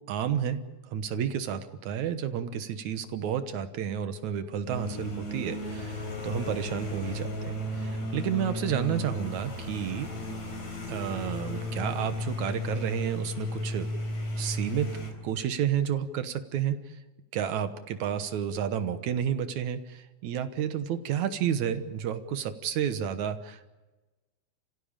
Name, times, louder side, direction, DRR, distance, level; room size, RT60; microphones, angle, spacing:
voice 1, 0.1-10.1 10.9-13.9 14.4-14.9 15.2-16.8 17.3-23.7, right 9 dB, 75° right, 10 dB, 2.5 m, -31 dB
sound 1, 4.7-15.1, left 1 dB, 70° left, 5.5 m, -34 dB
29.5 x 16.0 x 8.9 m, 1.2 s
omnidirectional pair, 3.4 m